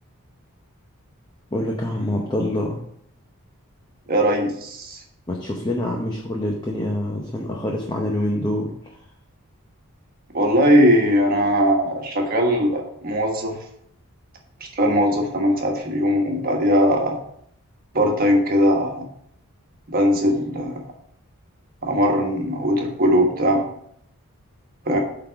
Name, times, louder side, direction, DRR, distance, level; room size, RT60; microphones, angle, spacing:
voice 1, 1.5-2.8 5.3-9.0, left 1 dB, 20° left, 0 dB, 0.7 m, -26 dB
voice 2, 4.1-5.0 10.3-13.6 14.6-17.2 17.9-19.1 19.9-20.8 21.8-23.6 24.8-25.0, equal, 40° right, 1 dB, 1.3 m, -20 dB
8.3 x 3.9 x 4.6 m, 0.70 s
head